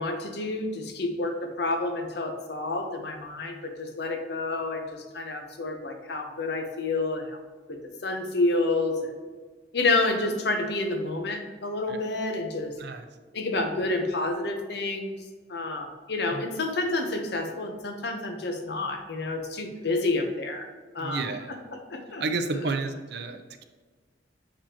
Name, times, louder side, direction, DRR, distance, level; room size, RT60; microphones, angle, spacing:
voice 1, 0.0-7.4 7.7-9.1 9.7-12.8 13.3-15.2 15.5-20.7 20.9-21.2 21.7-22.2, left 2 dB, 65° left, 5 dB, 0.8 m, -29 dB
voice 2, 21.0-21.5 22.2-23.6, right 3 dB, 65° right, 8 dB, 0.6 m, -31 dB
7.1 x 5.0 x 2.9 m, 1.4 s
head